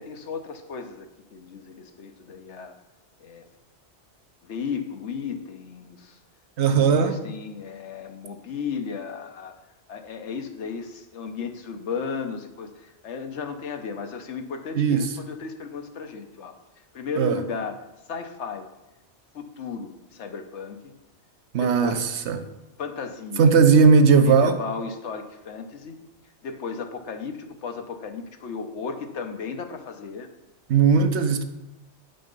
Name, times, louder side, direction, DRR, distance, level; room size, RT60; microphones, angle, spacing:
voice 1, 0.0-2.7 3.2-3.4 4.4-6.2 6.6-9.5 9.9-16.5 16.9-17.8 18.1-18.7 19.3-20.9 21.6-22.2 22.8-23.5 24.2-26.0 26.4-30.3, left 5 dB, 85° left, 6 dB, 1.2 m, -35 dB
voice 2, 6.6-7.2 14.8-15.1 17.2-17.4 21.5-22.4 23.4-24.6 30.7-31.4, right 5 dB, 80° right, 9 dB, 1.0 m, -18 dB
8.8 x 5.8 x 5.3 m, 1.0 s
omnidirectional pair, 1.2 m